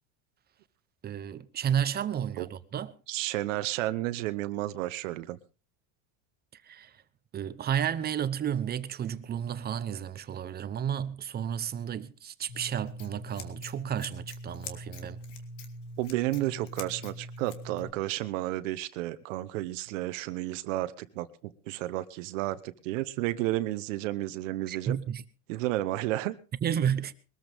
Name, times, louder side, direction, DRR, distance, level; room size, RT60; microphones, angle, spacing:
voice 1, 1.0-2.9 6.7-6.9 7.3-15.2 24.7-25.2 26.6-27.1, right 9 dB, 25° right, 0.9 m, -32 dB
voice 2, 3.1-5.4 16.0-25.0 25.5-26.4, right 16 dB, 80° right, 1.1 m, -32 dB
Scissors, 12.5-17.9, left 1 dB, 80° left, 2.8 m, -42 dB
22.0 x 14.0 x 3.6 m
supercardioid pair, 135°, 37 cm